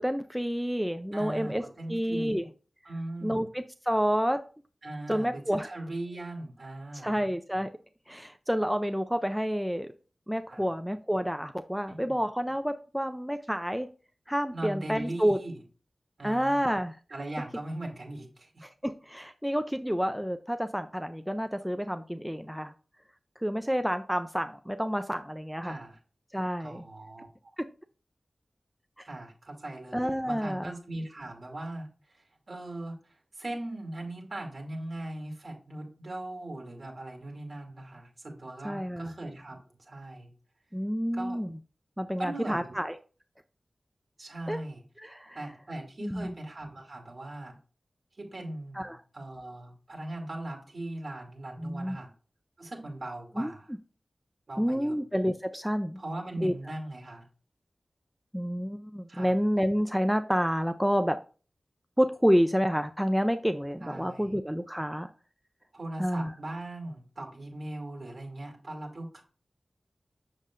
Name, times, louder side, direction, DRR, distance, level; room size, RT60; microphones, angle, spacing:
voice 1, 0.0-1.6 1.9-2.5 3.2-4.4 5.1-5.7 6.9-7.7 8.1-9.9 10.3-13.9 14.3-15.4 16.2-17.0 18.6-22.7 23.4-25.7 26.3-26.8 27.6-27.7 29.0-29.1 29.9-30.7 38.6-39.1 40.7-41.5 42.0-43.0 44.5-44.6 45.0-45.4 46.0-46.3 48.7-49.0 51.6-52.0 53.4-53.5 54.6-56.0 56.4-56.5 58.3-61.2 62.0-65.1 66.0-66.3, equal, ahead, 8 dB, 0.4 m, -29 dB
voice 2, 1.1-2.4 2.8-3.5 4.8-7.2 10.5-10.7 11.9-12.2 14.5-15.6 16.2-16.7 17.1-18.6 25.6-26.0 26.6-27.5 29.1-40.3 41.1-41.4 42.2-42.6 44.2-44.8 45.3-47.6 48.2-52.1 52.6-53.7 54.5-55.0 56.0-57.3 59.1-59.4 63.8-64.3 65.7-69.2, right 1 dB, 55° right, 1 dB, 2.4 m, -40 dB
7.3 x 6.6 x 2.4 m, 0.37 s
wide cardioid pair, 90°, 0 cm